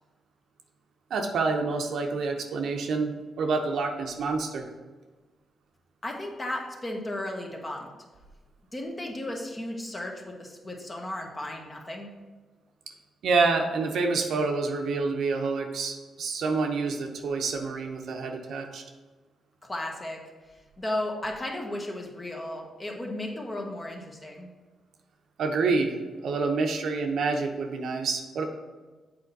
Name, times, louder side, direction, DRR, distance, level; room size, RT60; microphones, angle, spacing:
voice 1, 1.1-4.7 13.2-18.8 25.4-28.5, right 4 dB, 75° right, 3 dB, 0.8 m, -27 dB
voice 2, 6.0-7.9 8.7-12.1 19.6-20.2 20.5-24.5, left 1 dB, 25° left, 1 dB, 1.3 m, -35 dB
7.6 x 4.3 x 4.1 m, 1.3 s
cardioid pair, 80°, 0 cm